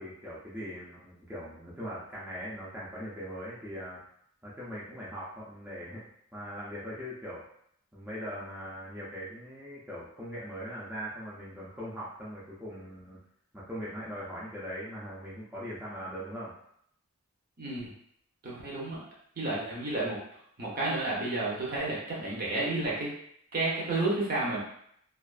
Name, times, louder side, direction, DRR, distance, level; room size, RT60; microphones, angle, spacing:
voice 1, 0.0-4.0 4.4-6.0 6.3-7.4 7.9-13.2 13.5-16.5, equal, 10° right, -9 dB, 0.4 m, -40 dB
voice 2, 17.6-17.9 18.4-19.0 19.4-20.2 20.6-23.1 23.5-24.6, right 2 dB, 40° right, -5 dB, 0.7 m, -31 dB
2.4 x 2.3 x 2.4 m, 0.68 s
head